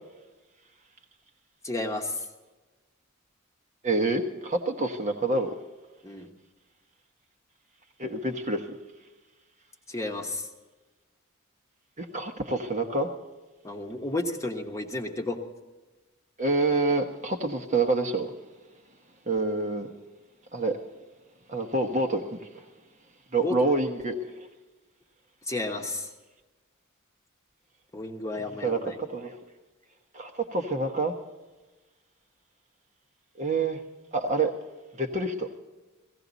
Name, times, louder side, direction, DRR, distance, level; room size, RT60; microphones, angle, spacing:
voice 1, 1.6-2.3 6.0-6.3 9.9-10.5 13.6-15.4 23.4-23.6 25.4-26.1 27.9-29.0, left 2 dB, 15° left, 1 dB, 1.2 m, -32 dB
voice 2, 3.8-5.5 8.0-8.8 12.0-13.1 16.4-18.3 19.3-19.9 20.5-20.8 21.5-22.4 23.3-24.5 28.6-29.3 30.1-31.1 33.4-33.8 34.1-34.5 35.0-35.5, right 2 dB, 35° right, 4 dB, 1.2 m, -27 dB
16.5 x 16.5 x 4.1 m, 1.2 s
head